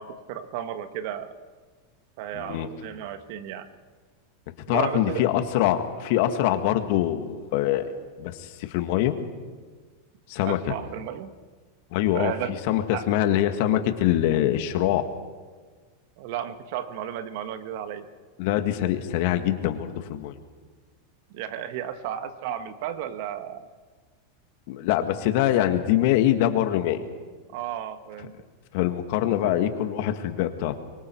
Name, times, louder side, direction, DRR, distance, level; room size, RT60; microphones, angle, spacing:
voice 1, 0.0-1.3 2.2-3.7 4.7-5.3 10.4-11.3 12.1-12.6 12.9-13.2 16.2-18.1 21.3-23.7 27.5-28.3 29.5-29.6, right 10 dB, 60° right, 10 dB, 1.6 m, -33 dB
voice 2, 2.3-2.7 4.7-7.9 8.2-9.2 10.3-10.7 11.9-12.3 12.7-15.1 18.4-20.4 24.7-27.0 28.7-30.7, left 12 dB, 60° left, 8 dB, 1.9 m, -24 dB
24.5 x 24.0 x 4.7 m, 1.5 s
hypercardioid pair, 110°, 0 cm